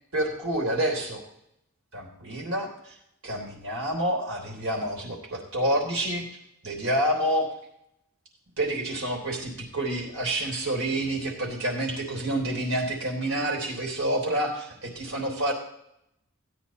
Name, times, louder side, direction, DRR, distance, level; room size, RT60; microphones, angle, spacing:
voice 1, 0.1-1.2 1.9-3.0 3.2-6.2 6.6-7.5 8.6-15.5, right 1 dB, 75° right, 1 dB, 3.4 m, -28 dB
16.5 x 9.7 x 3.1 m, 0.78 s
head